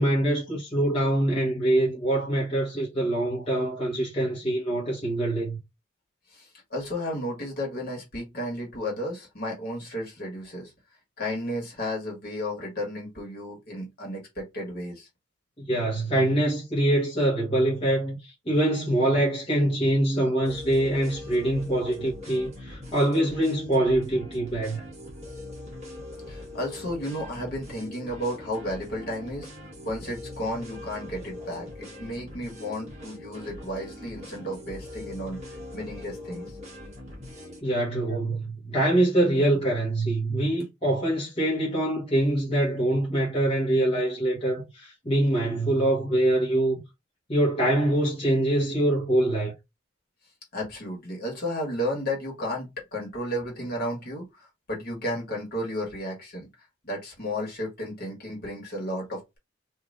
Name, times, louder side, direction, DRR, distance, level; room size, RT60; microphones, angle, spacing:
voice 1, 0.0-5.6 15.6-24.8 37.6-46.8 47.3-49.5, right 1 dB, 30° left, 1.1 m, -24 dB
voice 2, 6.3-10.7 11.2-15.1 26.3-29.5 29.8-35.4 35.7-36.6 38.1-38.2 50.5-56.5 56.8-59.4, left 1 dB, 50° left, 1.5 m, -33 dB
sound 1, 20.4-37.6, left 1 dB, 35° right, 1.4 m, -42 dB
3.3 x 2.7 x 2.5 m
head